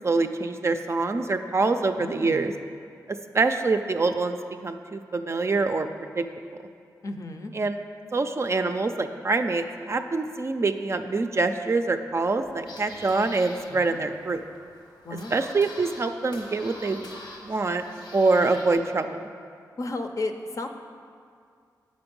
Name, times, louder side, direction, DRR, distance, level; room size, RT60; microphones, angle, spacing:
voice 1, 0.0-2.5 3.1-4.4 4.6-5.9 6.2-6.3 7.5-7.8 8.1-14.4 15.3-17.1 17.4-17.8 18.1-19.1, right 3 dB, 40° right, 7 dB, 0.4 m, -25 dB
voice 2, 2.0-2.4 7.0-7.5 13.7-14.1 15.0-15.3 19.8-20.7, left 2 dB, 45° left, 6 dB, 0.6 m, -33 dB
sound 1, 12.3-18.7, left 1 dB, 85° left, 1.1 m, -45 dB
6.9 x 5.2 x 5.2 m, 2.2 s
cardioid pair, 60°, 7 cm